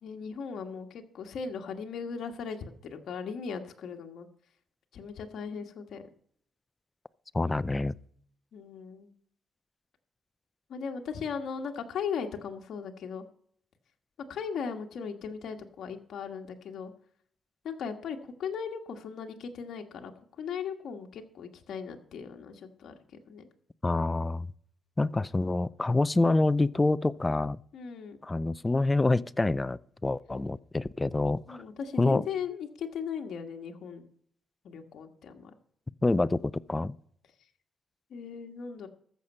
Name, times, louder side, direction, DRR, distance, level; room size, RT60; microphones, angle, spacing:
voice 1, 0.0-4.3 4.9-6.0 8.5-9.1 10.7-13.2 14.3-16.9 17.6-20.1 20.4-23.5 27.7-28.2 31.5-34.1 34.6-35.5 38.1-38.9, left 6 dB, 65° left, 1.5 m, -38 dB
voice 2, 7.3-7.9 23.8-24.5 25.0-27.6 28.2-31.6 32.0-32.2 36.0-37.0, left 2 dB, 15° left, 0.4 m, -27 dB
14.0 x 6.6 x 5.4 m
cardioid pair, 120°, 0 cm